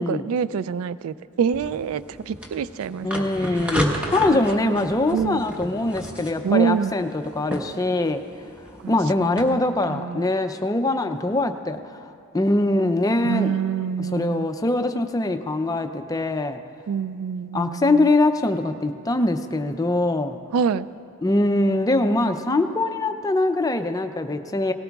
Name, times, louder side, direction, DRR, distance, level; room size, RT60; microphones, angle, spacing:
voice 1, 0.0-3.9 4.3-4.8 5.1-5.4 6.4-6.9 8.8-10.3 13.2-14.5 16.9-18.1 20.5-20.9, right 7 dB, 70° right, 17 dB, 0.3 m, -26 dB
sound 1, 1.5-9.4, equal, 5° right, 1.0 m, -32 dB
voice 2, 3.0-8.2 8.9-11.8 12.3-13.5 14.1-16.6 17.5-20.4 21.2-24.7, left 2 dB, 15° left, 8 dB, 0.4 m, -22 dB
18.5 x 17.0 x 2.3 m, 2.5 s
head